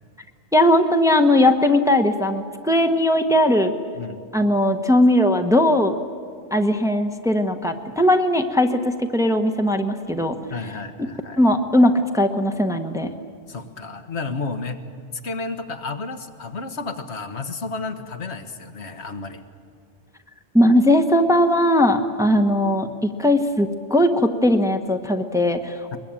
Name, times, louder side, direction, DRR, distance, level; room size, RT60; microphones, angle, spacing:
voice 1, 0.5-3.7 4.3-5.9 6.5-10.4 11.4-13.1 20.5-26.0, left 1 dB, 5° right, 5 dB, 1.0 m, -19 dB
voice 2, 3.9-4.3 10.5-11.4 13.5-14.8 15.2-19.4 22.3-22.4 25.9-26.0, left 3 dB, 80° left, 7 dB, 1.6 m, -32 dB
22.5 x 21.5 x 8.9 m, 2.1 s
omnidirectional pair, 1.1 m